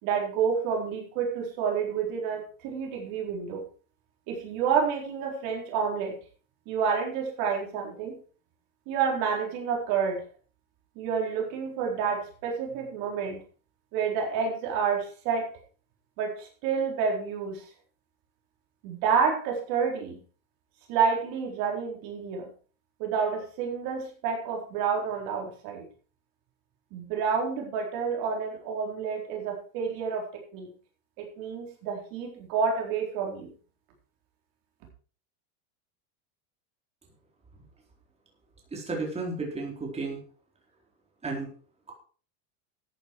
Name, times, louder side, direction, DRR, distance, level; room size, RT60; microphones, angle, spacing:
voice 1, 0.0-3.6 4.3-6.2 6.7-8.1 8.9-10.2 11.0-13.4 13.9-15.6 16.2-17.7 18.8-20.2 20.9-22.5 23.0-25.9 26.9-30.7 31.2-33.5, right 6 dB, 50° right, 1 dB, 4.3 m, -29 dB
voice 2, 38.7-40.2 41.2-41.5, right 3 dB, 15° right, -1 dB, 4.1 m, -33 dB
13.5 x 9.3 x 4.7 m, 0.40 s
supercardioid pair, 135°, 43 cm